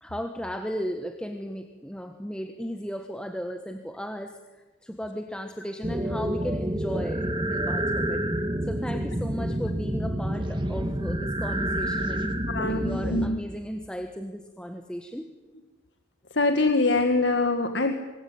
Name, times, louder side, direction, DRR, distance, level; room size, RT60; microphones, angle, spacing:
voice 1, 0.0-8.2 8.6-15.3, equal, 5° left, 6 dB, 1.4 m, -35 dB
sound 1, 5.8-13.3, right 1 dB, 25° right, 2.1 m, -28 dB
voice 2, 12.5-13.4 16.3-17.9, left 3 dB, 75° left, 6 dB, 1.8 m, -24 dB
27.0 x 22.0 x 9.6 m, 1.2 s
head